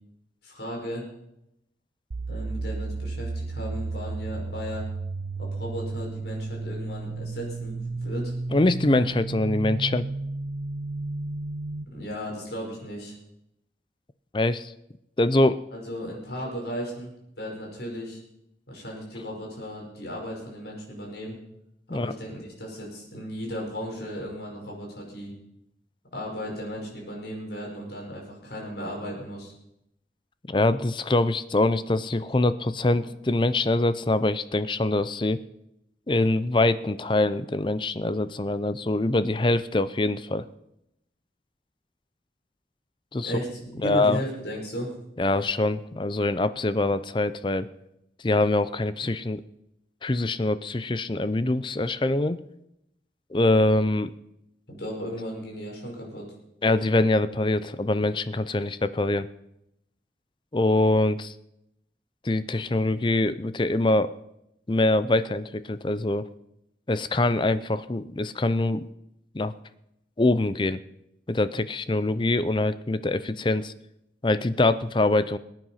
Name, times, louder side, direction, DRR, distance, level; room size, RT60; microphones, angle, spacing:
voice 1, 0.4-1.1 2.3-4.9 5.4-8.3 11.9-13.1 15.7-18.2 18.7-21.4 21.9-25.3 26.1-29.5 43.2-44.9 54.7-56.3, equal, 75° left, -1 dB, 5.4 m, -35 dB
sound 1, 2.1-11.9, right 3 dB, 90° right, 0.6 m, -33 dB
voice 2, 8.5-10.0 14.3-14.7 15.2-15.6 21.9-22.1 30.5-35.4 36.1-40.4 43.1-43.3 43.8-44.2 45.2-47.7 48.2-49.4 50.0-52.4 53.3-54.1 56.6-59.3 60.5-61.3 62.2-64.1 64.7-66.3 66.9-68.9 69.3-69.5 70.2-70.8 71.3-73.7 74.2-75.4, left 2 dB, 25° left, 14 dB, 0.5 m, -24 dB
20.5 x 9.2 x 5.6 m, 0.83 s
head